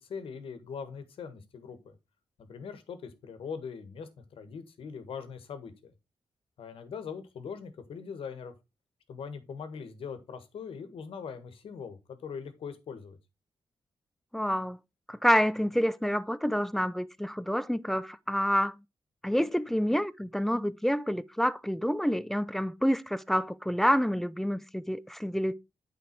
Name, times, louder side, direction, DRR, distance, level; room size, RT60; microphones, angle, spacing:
voice 1, 0.0-1.9 2.4-5.9 6.6-8.5 9.1-13.2, left 6 dB, 75° left, 1.6 m, -41 dB
voice 2, 14.3-14.8 15.1-18.8 19.2-25.5, equal, 5° left, 0.5 m, -28 dB
8.8 x 5.1 x 4.5 m
cardioid pair, 85°, 9 cm